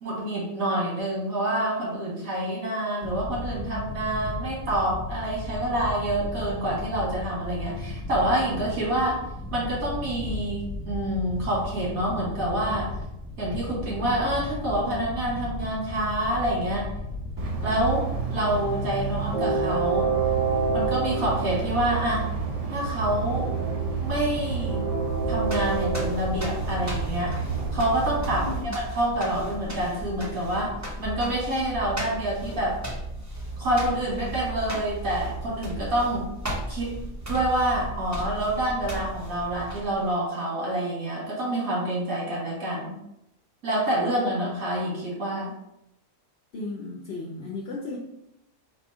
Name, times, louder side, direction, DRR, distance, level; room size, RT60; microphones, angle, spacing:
voice 1, 0.0-9.2 9.5-12.9 13.4-16.9 17.6-20.2 20.7-22.2 22.7-23.5 24.0-24.8 25.3-27.3 27.7-28.5 28.9-30.7 31.0-32.8 33.6-36.3 36.7-36.9 37.3-43.0 43.6-45.5, right 1 dB, 90° right, -5 dB, 2.1 m, -27 dB
sound 1, 3.0-18.1, left 2 dB, 20° left, 0.9 m, -35 dB
Train, 17.4-28.6, right 4 dB, 60° right, 0.4 m, -28 dB
sound 2, 25.0-40.1, right 1 dB, 15° right, 0.7 m, -35 dB
voice 2, 28.4-28.8 29.1-29.2 46.5-48.0, left 3 dB, 60° left, -2 dB, 0.8 m, -35 dB
4.2 x 2.6 x 4.7 m, 0.86 s
omnidirectional pair, 1.4 m